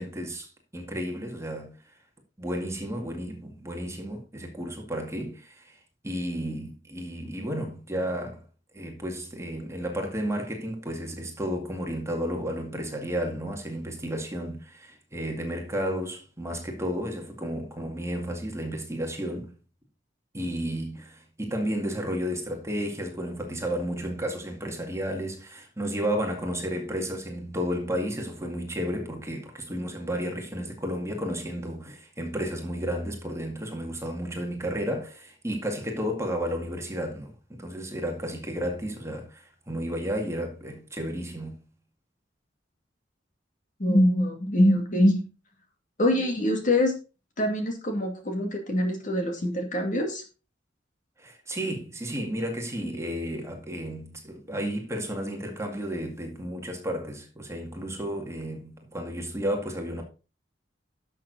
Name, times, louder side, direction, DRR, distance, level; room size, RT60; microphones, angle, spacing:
voice 1, 0.0-1.8 2.4-5.8 6.0-8.4 8.7-19.5 20.3-41.6 51.2-60.0, equal, 15° right, 2.1 m, -32 dB
voice 2, 43.8-45.3 46.0-47.0 47.4-50.2, left 1 dB, 45° left, 2.4 m, -24 dB
11.5 x 6.6 x 4.0 m
head